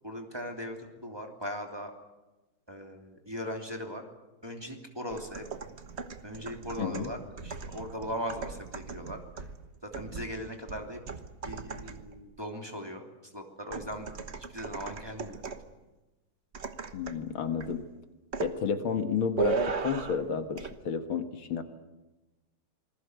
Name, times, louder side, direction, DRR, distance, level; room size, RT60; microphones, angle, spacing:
voice 1, 0.0-1.9 2.7-4.0 4.4-5.4 6.2-9.5 9.8-11.0 11.4-14.1 14.3-15.4, equal, 10° right, 2 dB, 3.0 m, -39 dB
sound 1, 5.1-12.2 13.7-15.7 16.5-17.3 17.6-17.8 18.3-18.6 19.4-20.3 20.6-20.8, right 5 dB, 35° right, 1.2 m, -37 dB
voice 2, 6.8-7.1 16.9-17.8 18.4-21.6, left 6 dB, 70° left, 8 dB, 2.3 m, -31 dB
27.5 x 21.0 x 8.1 m, 1.1 s
omnidirectional pair, 2.4 m